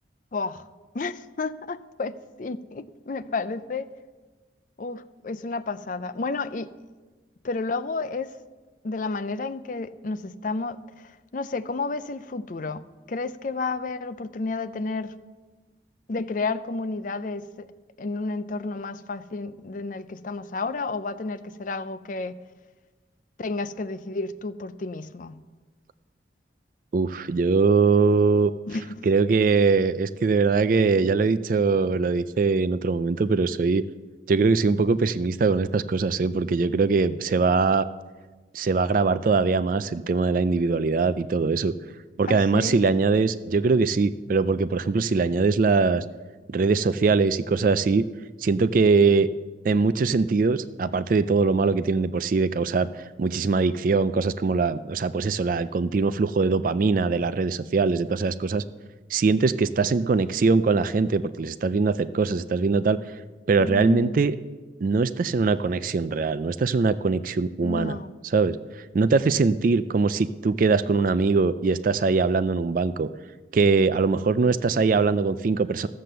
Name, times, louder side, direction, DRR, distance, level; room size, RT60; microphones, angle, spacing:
voice 1, 0.3-0.7 0.9-3.9 4.8-6.7 7.4-8.3 8.8-12.8 13.1-15.2 16.1-17.7 18.0-22.4 23.4-25.4 28.7-28.9 42.3-42.8 63.6-64.3 67.6-68.2, left 3 dB, 45° left, 12 dB, 0.5 m, -31 dB
voice 2, 26.9-28.5 29.0-33.8 34.3-37.9 38.5-41.7 42.2-46.0 46.5-48.0 48.4-49.3 49.6-52.9 53.2-58.6 59.1-63.0 63.5-64.4 64.8-68.0 68.3-73.1 73.5-75.9, right 4 dB, 45° right, 14 dB, 0.3 m, -22 dB
13.5 x 7.7 x 6.7 m, 1.3 s
head